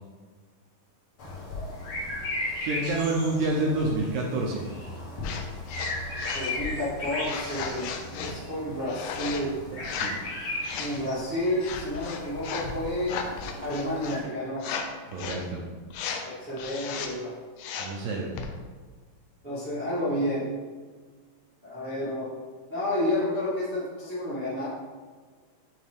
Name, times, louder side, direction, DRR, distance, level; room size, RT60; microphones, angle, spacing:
sound 1, 1.2-14.2, left 2 dB, 50° left, 2.4 m, -36 dB
voice 1, 2.6-4.6 9.7-10.2 15.1-15.6 17.8-18.3, right 2 dB, 80° right, -1 dB, 1.7 m, -28 dB
sound 2, 5.2-5.4 5.7-6.5 7.2-8.3 8.9-9.4 9.8-10.2 10.6-11.0 11.6-12.7 13.0-14.2 14.6-14.9 15.1-15.4 15.9-16.2 16.6-17.1 17.6-18.0 18.4-18.5, left 6 dB, 90° left, 1.6 m, -35 dB
voice 2, 6.3-9.5 10.7-13.2 13.6-14.6 16.2-17.3 19.4-20.5 21.6-22.3 22.7-24.7, left 1 dB, 50° right, -10 dB, 0.5 m, -30 dB
8.4 x 3.3 x 3.5 m, 1.5 s
omnidirectional pair, 3.9 m